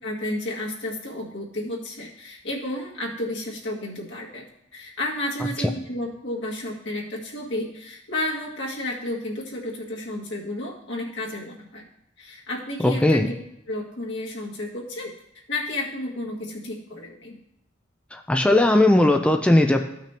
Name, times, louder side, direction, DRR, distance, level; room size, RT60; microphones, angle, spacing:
voice 1, 0.0-4.4 4.7-11.8 12.2-13.3 13.7-15.1 15.5-17.4, left 1 dB, 70° left, -3 dB, 2.0 m, -32 dB
voice 2, 12.8-13.3 18.1-19.9, left 1 dB, 5° left, 4 dB, 0.4 m, -18 dB
15.0 x 5.9 x 2.9 m, 0.80 s
head